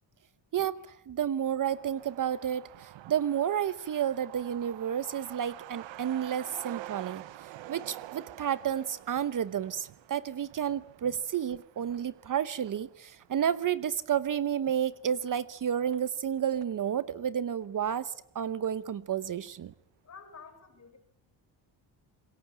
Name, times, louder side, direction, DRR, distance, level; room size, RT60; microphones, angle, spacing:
voice 1, 0.5-7.2 7.7-19.7, right 9 dB, 45° right, 16 dB, 1.0 m, -31 dB
Truck, 1.6-16.8 17.1-17.2 17.5-18.4 18.6-18.7 19.1-19.5, right 15 dB, 85° right, 1.1 m, -48 dB
voice 2, 20.0-21.0, left 5 dB, 35° left, 7 dB, 5.9 m, -50 dB
26.0 x 22.0 x 8.8 m, 0.72 s
cardioid pair, 120°, 44 cm